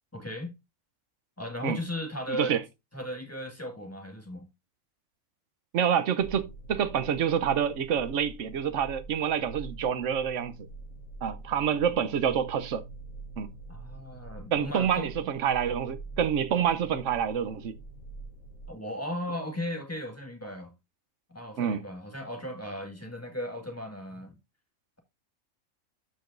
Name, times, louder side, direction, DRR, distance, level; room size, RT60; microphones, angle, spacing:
voice 1, 0.1-0.5 1.4-2.6 2.9-4.5 13.7-15.1 18.7-20.7 21.3-24.4, left 1 dB, 10° left, 1.9 m, -36 dB
voice 2, 2.3-2.6 5.7-10.5 11.2-12.8 13.4-13.5 14.5-17.7 21.6-21.8, right 8 dB, 65° right, 1.1 m, -27 dB
sound 1, 6.2-18.7, right 2 dB, 70° left, 1.8 m, -45 dB
13.0 x 5.0 x 2.6 m
omnidirectional pair, 1.5 m